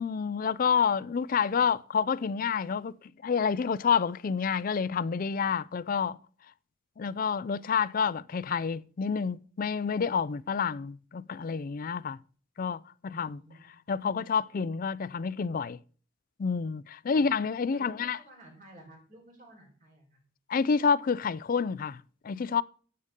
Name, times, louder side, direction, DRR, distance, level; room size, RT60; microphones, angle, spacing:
voice 1, 0.0-2.9 3.2-6.2 7.0-12.2 12.6-13.4 13.9-15.8 16.4-18.2 20.5-22.6, left 6 dB, 45° left, 0.4 m, -28 dB
voice 2, 13.1-13.7 17.1-17.3 17.7-20.2, right 1 dB, 40° right, 4.2 m, -53 dB
12.0 x 7.7 x 3.6 m
head